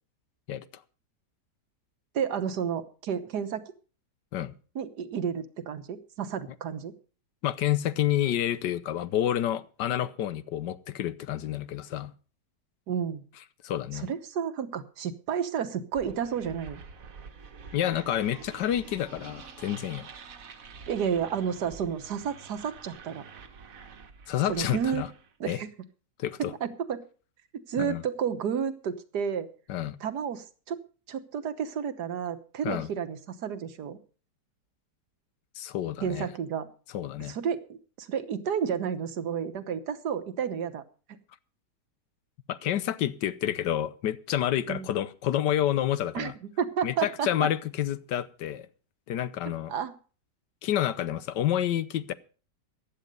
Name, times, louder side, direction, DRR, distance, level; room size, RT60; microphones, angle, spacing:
voice 1, 2.1-3.6 4.7-6.9 12.9-13.2 13.9-16.8 20.9-23.2 24.5-25.0 25.4-25.7 26.4-27.0 27.7-29.5 30.0-30.8 31.1-34.0 36.0-36.7 37.2-40.8 44.7-44.9 46.1-46.3 46.6-47.3 49.7-49.9, right 7 dB, 70° right, 11 dB, 1.6 m, -31 dB
voice 2, 7.4-12.1 13.6-14.1 17.7-20.1 24.3-25.1 25.5-25.6 26.2-26.5 27.8-28.0 29.7-30.0 32.6-32.9 35.6-36.3 36.9-37.4 42.5-46.3 46.8-48.7 49.1-49.7 50.6-52.1, left 11 dB, 80° left, 16 dB, 1.4 m, -29 dB
sound 1, 15.9-25.3, right 5 dB, 55° right, 1.6 m, -47 dB
15.0 x 10.5 x 5.2 m, 0.39 s
omnidirectional pair, 1.8 m